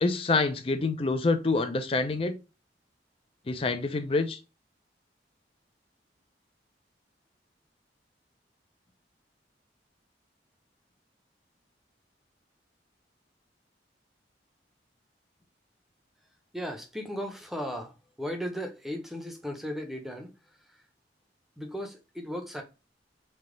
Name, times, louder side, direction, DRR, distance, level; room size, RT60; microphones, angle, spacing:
voice 1, 0.0-2.3 3.5-4.4, left 3 dB, 30° left, 0.5 m, -26 dB
voice 2, 16.5-20.8 21.6-22.6, equal, ahead, 0.7 m, -36 dB
3.4 x 2.8 x 3.8 m
head